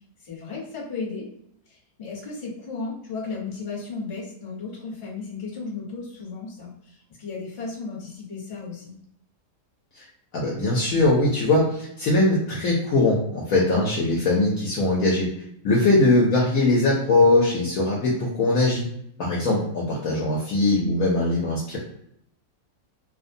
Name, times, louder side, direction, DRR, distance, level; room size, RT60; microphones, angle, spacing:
voice 1, 0.2-1.3 1.7-8.9 15.7-15.9, left 4 dB, 30° left, -6 dB, 0.9 m, -35 dB
voice 2, 10.3-15.3 15.6-18.8 19.2-21.8, left 2 dB, 65° left, -4 dB, 0.9 m, -21 dB
2.7 x 2.1 x 2.6 m, 0.73 s
omnidirectional pair, 1.8 m